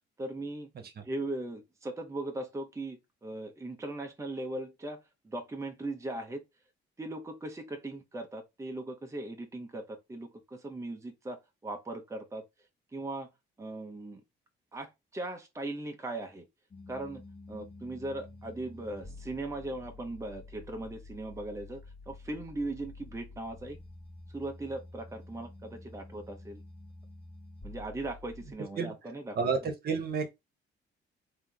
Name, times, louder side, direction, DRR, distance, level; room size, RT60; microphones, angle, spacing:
voice 1, 0.2-0.7 1.0-6.4 7.0-12.4 12.9-13.3 13.6-14.2 14.7-16.5 16.9-17.2 17.5-23.8 24.3-26.6 27.6-29.4, right 2 dB, 15° right, 0.9 m, -39 dB
sound 1, 16.7-28.5, left 2 dB, 30° left, 1.2 m, -49 dB
voice 2, 29.4-30.3, right 5 dB, 50° right, 1.1 m, -30 dB
3.6 x 2.9 x 3.6 m
cardioid pair, 90°, 20 cm